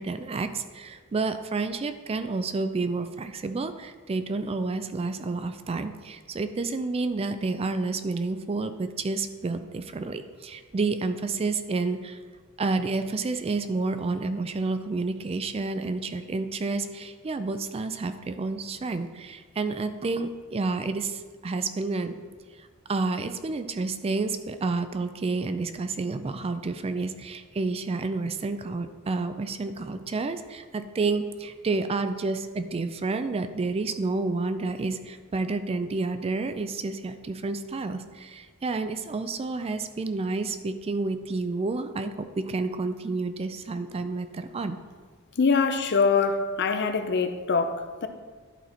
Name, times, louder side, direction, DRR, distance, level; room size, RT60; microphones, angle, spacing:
voice 1, 0.0-12.2 12.6-22.2 22.9-44.8, right 3 dB, 30° right, 0.4 m, -30 dB
voice 2, 45.4-48.1, left 5 dB, 55° left, 0.6 m, -24 dB
11.0 x 4.2 x 4.3 m
head